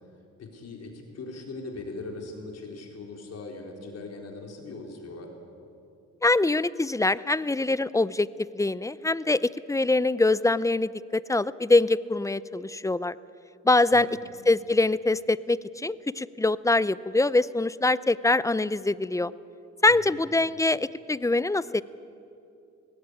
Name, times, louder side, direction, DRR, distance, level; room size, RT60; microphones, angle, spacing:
voice 1, 0.4-5.3 13.9-14.4 19.9-20.2, left 3 dB, 55° left, 2 dB, 4.3 m, -40 dB
voice 2, 6.2-8.3 8.5-13.2 13.6-14.2 14.5-19.3 19.8-21.8, left 2 dB, 10° left, 18 dB, 0.5 m, -24 dB
20.0 x 17.0 x 10.0 m, 2.6 s
cardioid pair, 90°, 30 cm